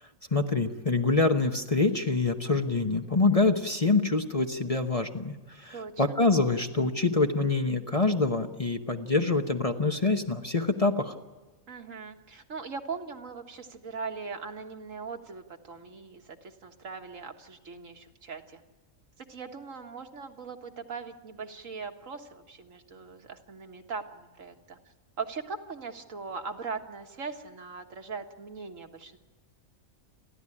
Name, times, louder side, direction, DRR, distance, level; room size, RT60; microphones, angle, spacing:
voice 1, 0.3-5.3 5.6-11.1, left 3 dB, 30° left, 5 dB, 1.0 m, -25 dB
voice 2, 5.7-6.2 11.7-18.6 19.2-24.8 25.2-29.2, right 5 dB, 65° right, 5 dB, 1.9 m, -40 dB
30.0 x 12.5 x 9.9 m, 1.3 s
omnidirectional pair, 1.4 m